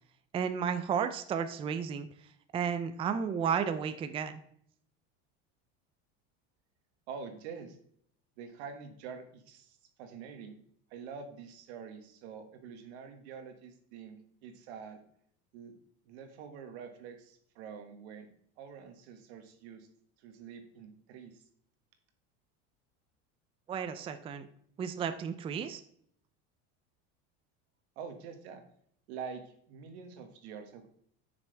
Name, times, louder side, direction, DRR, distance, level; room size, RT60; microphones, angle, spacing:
voice 1, 0.3-2.1 2.5-4.4 23.7-24.5 24.8-25.8, right 7 dB, 20° right, 10 dB, 0.4 m, -33 dB
voice 2, 7.1-7.8 8.4-10.6 10.9-14.2 14.4-15.0 15.5-15.8 16.0-18.3 18.6-19.9 20.2-21.5 27.9-28.6 29.1-30.9, right 6 dB, 85° right, 6 dB, 1.5 m, -46 dB
7.7 x 6.1 x 3.3 m, 0.65 s
supercardioid pair, 140°, 32 cm